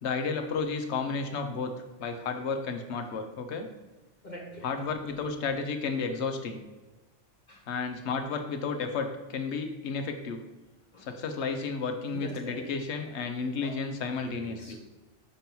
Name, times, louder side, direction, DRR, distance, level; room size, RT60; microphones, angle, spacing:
voice 1, 0.0-1.7 2.0-3.7 4.6-6.6 7.7-10.4 11.0-14.8, left 4 dB, 60° left, 6 dB, 1.0 m, -32 dB
voice 2, 4.2-4.7 7.5-7.6 10.9-11.1 12.1-12.6 12.9-13.0 13.6-13.8 14.4-14.8, left 1 dB, 35° left, -3 dB, 1.3 m, -43 dB
6.6 x 3.0 x 5.3 m, 1.1 s
omnidirectional pair, 1.4 m